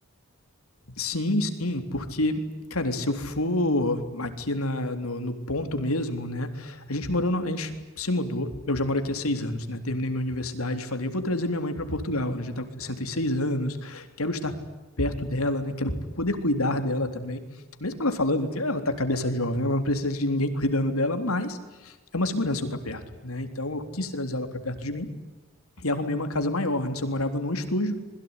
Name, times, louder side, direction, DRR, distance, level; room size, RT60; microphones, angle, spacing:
voice 1, 1.0-2.4 2.7-14.6 15.0-17.4 17.8-25.1 25.8-28.0, left 1 dB, 85° left, 8 dB, 3.7 m, -28 dB
26.5 x 22.0 x 9.9 m, 1.2 s
head